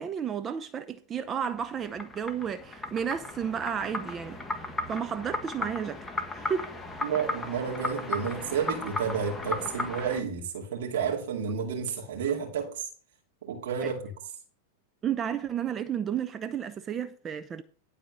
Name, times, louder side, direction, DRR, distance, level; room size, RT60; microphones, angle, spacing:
voice 1, 0.0-6.0 6.3-6.7 13.8-13.9 15.0-17.6, right 8 dB, 25° right, 0.7 m, -32 dB
sound 1, 1.3-10.2, left 2 dB, 10° left, 1.5 m, -36 dB
voice 2, 7.0-12.9 13.4-14.1, right 6 dB, 65° right, 2.4 m, -31 dB
12.0 x 4.2 x 6.6 m
hypercardioid pair, 105°, 0 cm